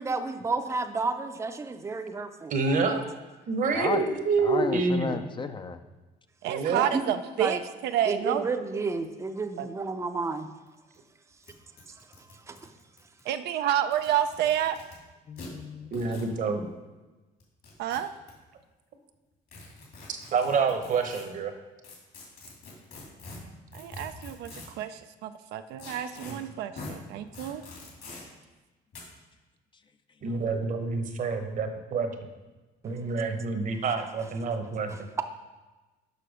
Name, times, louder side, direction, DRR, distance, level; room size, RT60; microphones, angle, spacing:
voice 1, 0.0-2.5 6.9-7.6 8.1-10.5 12.5-12.6, right 3 dB, 15° right, 7 dB, 0.6 m, -31 dB
voice 2, 2.5-3.0 3.5-5.3 6.5-7.0 15.9-16.7 20.1-21.5 26.3-26.4 30.2-32.1 32.8-34.9, right 4 dB, 50° right, 6 dB, 1.0 m, -27 dB
voice 3, 4.4-5.8 15.3-15.9, left 4 dB, 30° left, 9 dB, 0.5 m, -33 dB
voice 4, 6.4-8.4 9.6-9.7 13.3-14.8 17.8-18.1 23.7-27.6, right 10 dB, 80° right, 9 dB, 0.5 m, -29 dB
sound 1, 10.7-10.8 10.9-11.0 11.4-11.5 11.8-13.2 13.8-14.9 15.4-15.5 15.9-16.3 17.4-18.3 19.5-21.2 21.8-24.8 25.8-26.3 26.8-26.9 27.3-28.2 28.9-29.0, left 3 dB, 65° left, 2.8 m, -44 dB
6.7 x 5.8 x 5.0 m, 1.2 s
cardioid pair, 110°, 17 cm